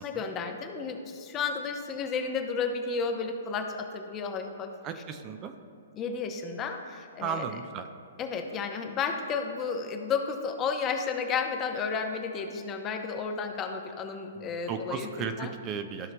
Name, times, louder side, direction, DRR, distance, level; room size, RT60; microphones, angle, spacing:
voice 1, 0.0-4.7 4.9-5.0 5.9-7.5 8.2-15.5, left 5 dB, 25° left, 5 dB, 0.8 m, -32 dB
voice 2, 4.8-5.6 7.2-7.8 14.7-16.1, right 6 dB, 30° right, 7 dB, 0.5 m, -35 dB
14.0 x 5.8 x 2.3 m, 2.4 s
hypercardioid pair, 125°, 0 cm